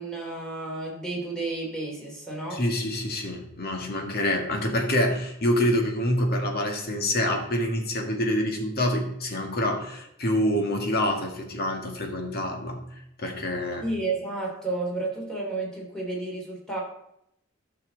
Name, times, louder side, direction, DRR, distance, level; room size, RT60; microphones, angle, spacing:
voice 1, 0.0-2.6 13.8-16.8, right 2 dB, 5° left, -3 dB, 2.9 m, -31 dB
voice 2, 2.5-12.8 13.2-13.8, left 1 dB, 50° left, 2 dB, 1.8 m, -26 dB
13.5 x 5.9 x 4.0 m, 0.79 s
head